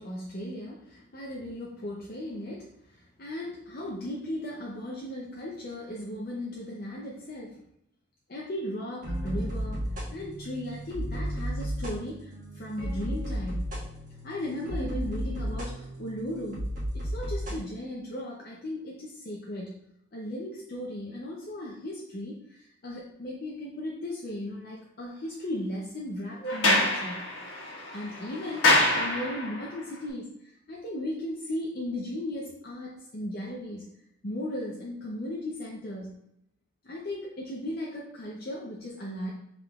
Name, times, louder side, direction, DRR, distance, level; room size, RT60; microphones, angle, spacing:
voice 1, 0.0-7.6 8.3-9.8 10.1-13.7 14.2-16.6 16.9-19.8 20.1-27.2 27.9-33.8 34.2-36.2 36.8-39.3, left 1 dB, 50° left, -3 dB, 0.6 m, -36 dB
sound 1, 9.0-17.6, equal, 45° right, 1.3 m, -34 dB
Sliding door, 26.4-29.7, left 2 dB, 75° left, 1.3 m, -26 dB
5.5 x 3.7 x 2.4 m, 0.80 s
head